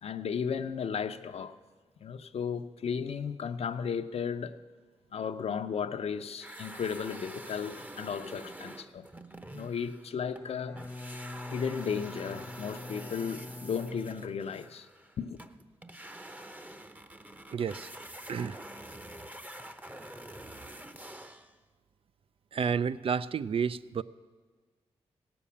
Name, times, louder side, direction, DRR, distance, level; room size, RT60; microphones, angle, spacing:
voice 1, 0.0-1.6 2.0-4.6 5.1-9.0 9.5-10.8 11.5-14.9 15.2-15.4, left 6 dB, 65° left, 0.7 m, -34 dB
sound 1, 6.4-10.5 10.8-21.6, right 1 dB, 15° right, 0.8 m, -46 dB
Bowed string instrument, 10.3-14.6, left 2 dB, 25° left, 0.6 m, -44 dB
voice 2, 17.5-17.9 18.3-18.6 22.5-24.0, right 6 dB, 55° right, 0.4 m, -31 dB
17.0 x 7.1 x 8.5 m
cardioid pair, 60°, 11 cm